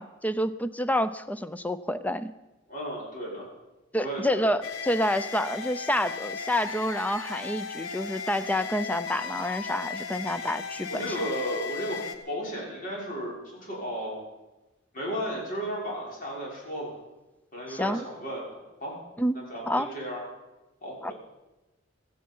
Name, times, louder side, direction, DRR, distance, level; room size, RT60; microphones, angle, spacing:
voice 1, 0.0-2.3 3.9-11.1 17.7-18.0 19.2-19.4 19.7-19.9 21.0-21.1, left 1 dB, 10° left, 13 dB, 0.6 m, -28 dB
voice 2, 2.7-3.5 4.0-4.5 10.2-10.3 10.9-12.0 12.3-14.2 14.9-16.9 17.5-19.0 19.5-20.2 20.8-21.1, equal, 45° left, -3 dB, 6.1 m, -34 dB
sound 1, 4.6-12.2, left 5 dB, 85° left, 1.4 m, -36 dB
16.5 x 14.5 x 5.6 m, 1.1 s
head